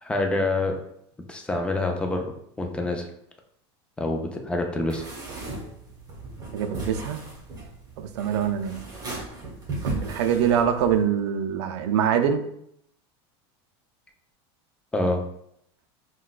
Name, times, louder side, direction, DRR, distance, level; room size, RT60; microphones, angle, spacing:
voice 1, 0.0-0.7 1.3-2.2 2.6-3.1 4.0-5.0 14.9-15.2, left 2 dB, 5° left, 3 dB, 0.4 m, -26 dB
sound 1, 4.9-11.0, right 2 dB, 25° right, 1.1 m, -36 dB
voice 2, 6.5-7.2 8.0-8.7 9.8-12.4, right 8 dB, 80° right, 8 dB, 0.4 m, -24 dB
3.7 x 2.2 x 2.3 m, 0.73 s
supercardioid pair, 125°, 14 cm